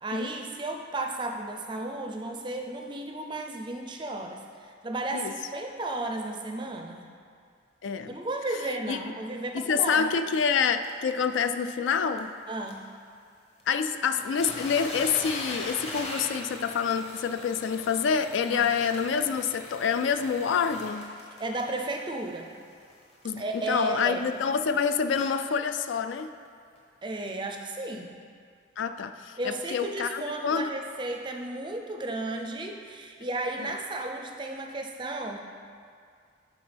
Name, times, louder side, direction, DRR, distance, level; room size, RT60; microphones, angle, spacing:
voice 1, 0.0-7.1 8.1-10.1 12.5-12.8 18.5-18.7 21.4-22.5 23.4-24.2 27.0-28.1 29.4-35.4, right 2 dB, 25° right, 3 dB, 0.4 m, -34 dB
voice 2, 7.8-8.2 8.9-9.0 9.5-12.4 13.7-21.2 23.2-26.3 28.8-30.7, left 6 dB, 70° left, 9 dB, 0.3 m, -27 dB
sound 1, 10.8-10.9 11.4-11.5 11.7-11.8 12.2-12.3 12.7-12.8 13.6-13.7 14.0-25.5 26.2-26.3 26.8-26.9, left 1 dB, 30° left, 0.9 m, -41 dB
11.0 x 4.4 x 3.4 m, 2.2 s
head